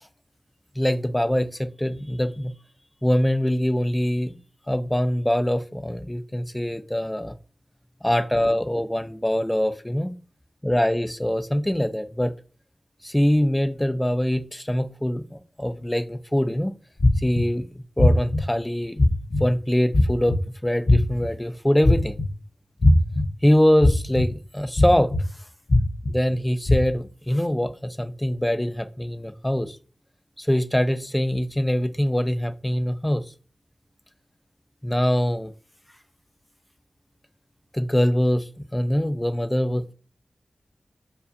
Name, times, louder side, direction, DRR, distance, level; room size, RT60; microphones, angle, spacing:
voice 1, 0.8-2.5 3.0-4.4 4.7-7.3 8.0-10.1 10.6-12.3 13.0-16.7 17.2-19.1 19.4-22.2 23.4-25.1 26.1-29.8 30.4-33.2 34.8-35.5 37.7-39.9, equal, 10° left, 10 dB, 0.5 m, -23 dB
sound 1, 17.0-17.4 18.0-18.4 19.0-19.4 19.9-20.4 20.9-21.3 21.8-22.3 22.8-23.2 23.8-24.2 24.8-25.2 25.7-26.1 26.7-26.8, left 1 dB, 55° left, 0.7 m, -17 dB
4.8 x 2.4 x 2.6 m, 0.37 s
cardioid pair, 50°, 0 cm